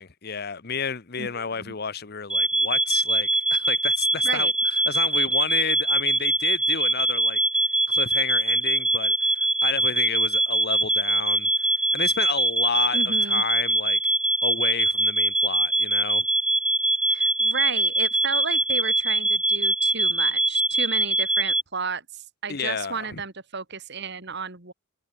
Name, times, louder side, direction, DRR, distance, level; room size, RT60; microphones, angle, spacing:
voice 1, 0.0-7.4 7.9-14.1 14.4-16.3 22.5-23.2, left 6 dB, 45° left, 1.0 m, -31 dB
voice 2, 1.2-1.7 4.2-4.5 12.9-13.4 17.1-24.7, right 5 dB, 55° right, 2.8 m, -33 dB
sound 1, 2.3-21.6, right 2 dB, 5° right, 0.4 m, -23 dB
head